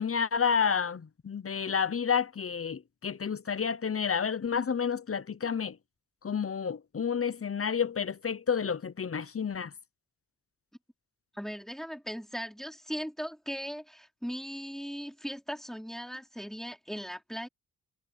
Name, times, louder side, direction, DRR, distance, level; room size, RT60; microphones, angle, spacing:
voice 1, 0.0-5.8 6.2-9.7, left 6 dB, 40° left, 0.9 m, -30 dB
voice 2, 11.3-17.5, equal, ahead, 4.3 m, -38 dB
wide cardioid pair, 90°, 35 cm